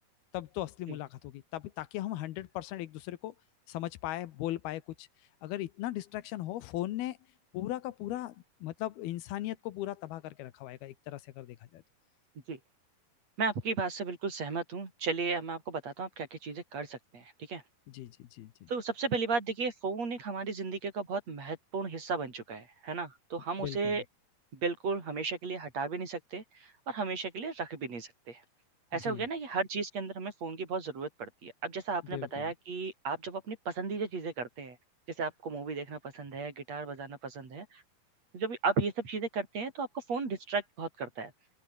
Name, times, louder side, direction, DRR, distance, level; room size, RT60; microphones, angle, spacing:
voice 1, 0.3-3.3 3.7-5.1 5.4-7.2 7.5-8.4 8.6-11.8 17.9-18.7 23.6-24.0 29.0-29.3 32.1-32.5, left 14 dB, 85° left, 3.0 m, -38 dB
voice 2, 13.4-17.6 18.7-24.0 24.5-28.4 28.9-34.8 35.2-37.8 38.3-41.3, right 4 dB, 45° right, 5.4 m, -35 dB
omnidirectional pair, 4.5 m